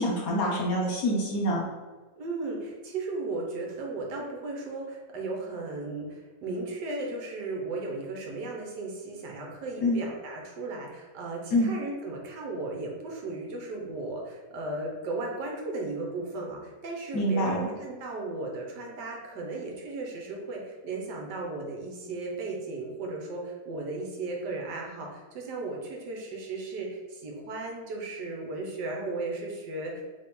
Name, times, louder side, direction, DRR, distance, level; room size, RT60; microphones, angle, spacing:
voice 1, 0.0-1.6 9.8-10.0 11.5-11.7 17.1-17.7, equal, 60° left, -2 dB, 1.3 m, -26 dB
voice 2, 2.2-30.0, right 2 dB, 75° right, 0 dB, 1.4 m, -35 dB
4.3 x 3.3 x 3.5 m, 1.3 s
omnidirectional pair, 1.9 m